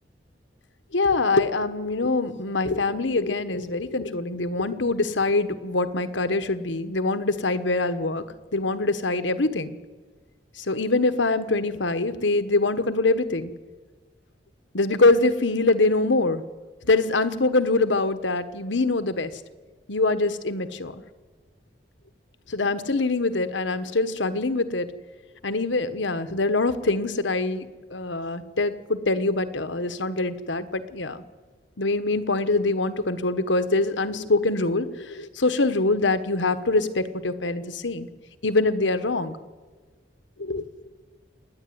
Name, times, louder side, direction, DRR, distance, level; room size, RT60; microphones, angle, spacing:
voice 1, 0.9-8.2 8.5-9.8 10.6-13.5 14.7-16.4 16.8-19.3 19.9-21.0 22.5-24.9 25.4-31.2 31.8-38.1 38.4-39.4 40.4-40.7, left 3 dB, 80° left, 11 dB, 1.2 m, -24 dB
27.5 x 10.0 x 9.5 m, 1.4 s
head